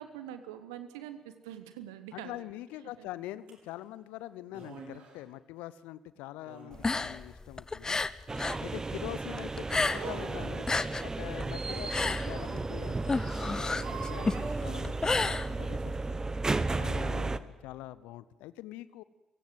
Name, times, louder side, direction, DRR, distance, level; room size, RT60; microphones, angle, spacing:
voice 1, 0.0-2.5 3.0-3.1, right 10 dB, 75° right, 11 dB, 1.4 m, -44 dB
voice 2, 2.1-8.0 8.4-10.7 11.0-16.2 16.8-19.0, left 15 dB, 70° left, 17 dB, 0.7 m, -44 dB
sound 1, 3.5-3.6 4.5-5.2 6.4-7.2 9.8-10.9 13.8-14.9, right 5 dB, 60° right, 5.0 m, -45 dB
sound 2, 6.7-8.7 8.9-10.3 10.5-16.0, left 3 dB, 25° left, 1.0 m, -31 dB
sound 3, 8.3-17.4, right 3 dB, 25° right, 1.2 m, -34 dB
29.5 x 17.5 x 7.9 m, 1.2 s
figure-of-eight pair, 45°, 3 cm